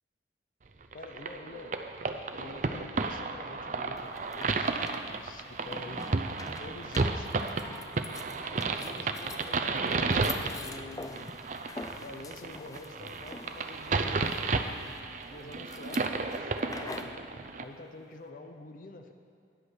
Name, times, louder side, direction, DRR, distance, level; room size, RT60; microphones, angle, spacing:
voice 1, 0.9-1.8 2.3-4.7 5.1-6.1 6.6-7.9 8.5-11.3 12.0-14.5 15.3-17.1 17.6-19.1, left 2 dB, 50° left, 6 dB, 0.8 m, -47 dB
sound 1, 0.9-17.6, right 3 dB, 45° right, 0.5 m, -33 dB
sound 2, 4.0-17.2, left 3 dB, 20° left, 0.4 m, -46 dB
10.0 x 8.1 x 6.3 m, 2.4 s
head